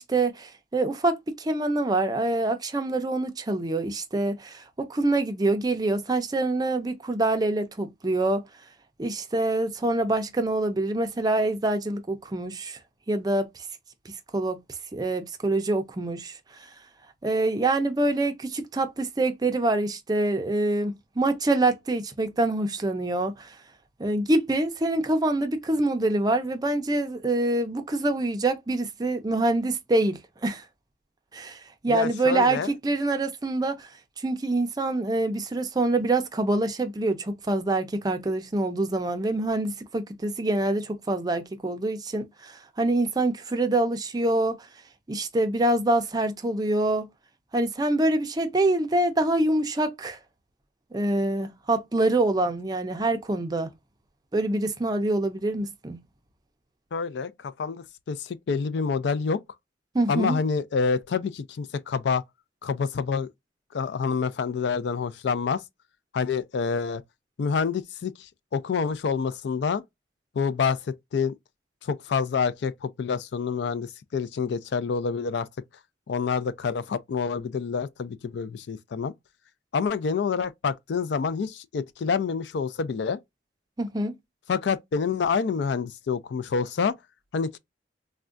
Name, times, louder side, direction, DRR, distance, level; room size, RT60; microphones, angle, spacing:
voice 1, 0.0-8.4 9.0-12.8 13.1-13.6 14.3-14.6 14.9-16.7 17.2-23.6 24.0-30.6 31.3-33.9 34.2-44.7 45.1-47.1 47.5-50.2 50.9-53.7 54.3-56.0 59.9-60.4 83.8-84.1, right 2 dB, 20° right, 0.4 m, -25 dB
voice 2, 31.9-32.7 56.9-59.4 60.1-62.2 62.6-63.3 63.7-65.6 66.1-67.0 67.4-69.8 70.3-71.3 71.8-75.5 76.1-79.1 79.7-83.2 84.5-87.0 87.3-87.6, left 5 dB, 70° left, 0.4 m, -27 dB
3.5 x 2.1 x 2.4 m
head